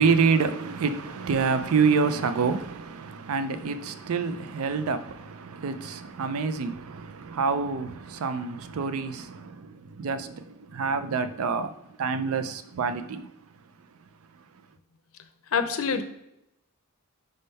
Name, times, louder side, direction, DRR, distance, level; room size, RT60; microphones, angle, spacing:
voice 1, 0.0-13.3, right 5 dB, 70° right, 0.4 m, -27 dB
voice 2, 15.5-16.0, left 6 dB, 65° left, 0.6 m, -25 dB
5.3 x 3.5 x 5.4 m
head